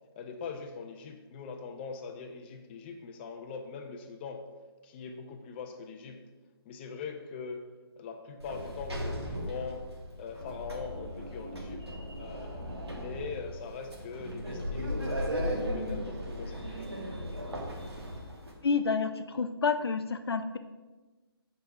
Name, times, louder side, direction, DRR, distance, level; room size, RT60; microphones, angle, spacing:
voice 1, 0.2-4.5 4.8-6.2 6.7-7.6 8.0-9.9 10.2-11.8 12.2-17.2, left 5 dB, 25° left, 5 dB, 0.8 m, -42 dB
Sliding door, 8.4-18.5, equal, 85° right, 2.1 m, -37 dB
voice 2, 18.6-20.6, left 5 dB, 75° left, 8 dB, 0.6 m, -29 dB
7.8 x 5.4 x 4.7 m, 1.2 s
figure-of-eight pair, 150°, 13 cm